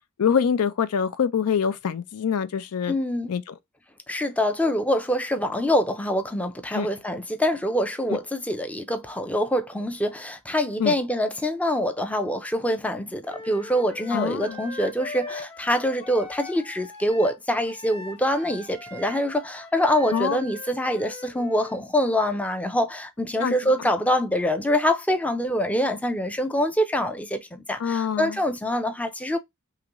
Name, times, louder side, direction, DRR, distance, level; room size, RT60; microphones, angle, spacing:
voice 1, 0.2-2.9 3.3-3.5 6.7-6.9 10.8-10.9 14.1-14.6 20.1-20.5 23.4-23.5 27.8-28.4, left 7 dB, 75° left, 0.4 m, -25 dB
voice 2, 2.9-3.3 4.1-29.4, equal, 5° left, 0.5 m, -25 dB
Wind instrument woodwind instrument, 13.3-21.8, left 3 dB, 25° left, 1.3 m, -40 dB
3.7 x 2.9 x 2.9 m
head